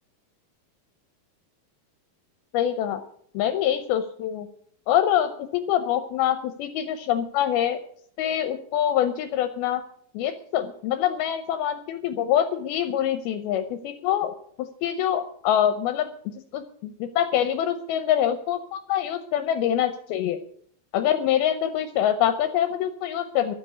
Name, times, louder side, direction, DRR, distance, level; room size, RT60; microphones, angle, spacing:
voice 1, 2.5-3.0 3.3-4.5 4.9-7.8 8.2-9.8 10.1-14.3 14.6-20.4 20.9-23.6, left 10 dB, 80° left, 8 dB, 2.5 m, -25 dB
12.0 x 7.7 x 9.5 m, 0.65 s
omnidirectional pair, 4.6 m